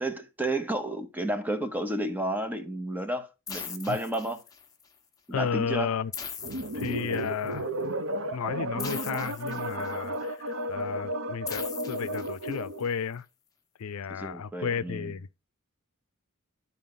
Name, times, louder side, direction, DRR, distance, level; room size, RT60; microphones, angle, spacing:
voice 1, 0.0-4.4 5.3-5.9 14.1-15.2, right 1 dB, 10° right, 1.0 m, -31 dB
sound 1, 3.5-4.8 6.1-7.5 8.8-10.2 11.5-12.8, left 6 dB, 15° left, 1.1 m, -41 dB
voice 2, 5.3-6.1 6.7-7.7 8.3-13.3 13.8-15.4, left 6 dB, 85° left, 0.4 m, -33 dB
sound 2, 6.4-12.9, right 1 dB, 70° right, 1.0 m, -33 dB
12.0 x 4.3 x 3.8 m
head